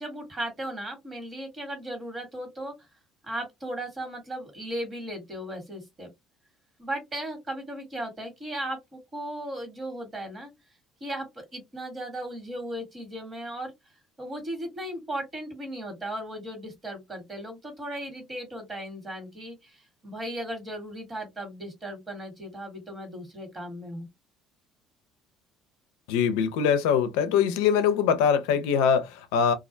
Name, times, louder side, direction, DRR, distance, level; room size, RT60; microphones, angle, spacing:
voice 1, 0.0-2.7 3.2-6.1 6.8-10.5 11.0-13.7 14.2-24.1, right 1 dB, 30° right, 1.3 m, -36 dB
voice 2, 26.1-29.5, left 7 dB, 90° left, 0.4 m, -23 dB
2.3 x 2.1 x 2.5 m
supercardioid pair, 90°, 0 cm